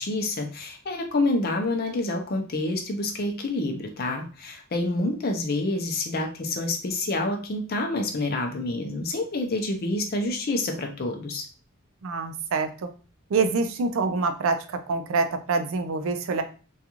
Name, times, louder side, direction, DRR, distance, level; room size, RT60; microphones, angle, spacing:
voice 1, 0.0-11.4, left 2 dB, 45° left, 4 dB, 0.5 m, -28 dB
voice 2, 12.0-12.9 13.3-16.4, right 4 dB, 65° right, 8 dB, 0.4 m, -26 dB
2.4 x 2.3 x 2.9 m, 0.36 s
head